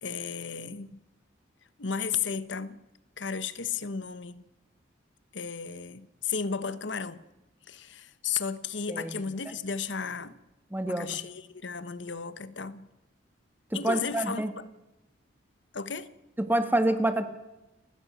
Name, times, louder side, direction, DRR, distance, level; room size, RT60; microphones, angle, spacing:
voice 1, 0.0-1.0 1.8-2.8 3.2-4.4 5.3-7.2 7.7-10.4 10.9-12.9 13.7-14.5 15.7-16.1, left 6 dB, 70° left, 1.1 m, -34 dB
voice 2, 10.7-11.1 13.8-14.5 16.4-17.3, right 1 dB, 10° right, 1.5 m, -26 dB
30.0 x 16.0 x 6.1 m
head